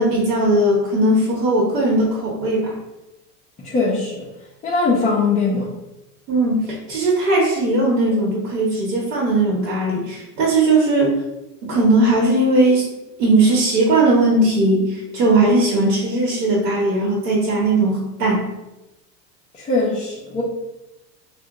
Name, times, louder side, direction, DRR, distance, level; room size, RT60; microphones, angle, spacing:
voice 1, 0.0-2.7 6.3-11.1 11.6-12.9 13.2-18.4, right 2 dB, 80° right, -3 dB, 1.0 m, -18 dB
voice 2, 3.6-4.2 4.6-5.7 19.5-20.4, left 3 dB, 15° left, -5 dB, 0.4 m, -20 dB
2.8 x 2.2 x 3.6 m, 0.96 s
hypercardioid pair, 95°, 48 cm